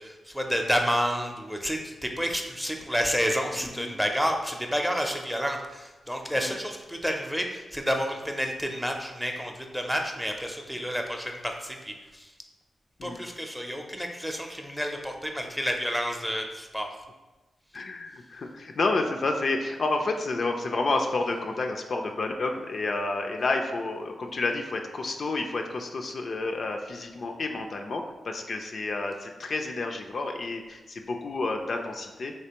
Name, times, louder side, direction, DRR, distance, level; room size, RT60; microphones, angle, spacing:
voice 1, 0.0-12.3 13.0-16.9, equal, ahead, 3 dB, 0.5 m, -30 dB
voice 2, 3.6-4.0 6.4-6.5 13.0-13.2 17.7-32.3, left 3 dB, 60° left, 3 dB, 0.3 m, -30 dB
3.3 x 2.9 x 2.9 m, 1.1 s
supercardioid pair, 45°, 0 cm